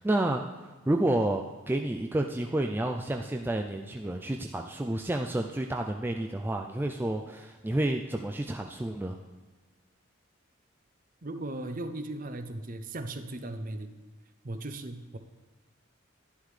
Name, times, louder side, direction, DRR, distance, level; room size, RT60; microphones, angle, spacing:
voice 1, 0.0-9.2, right 1 dB, 10° right, 3 dB, 0.3 m, -30 dB
voice 2, 11.2-14.0 14.4-15.2, right 1 dB, 40° right, 8 dB, 0.7 m, -37 dB
11.5 x 10.5 x 3.3 m, 1.4 s
head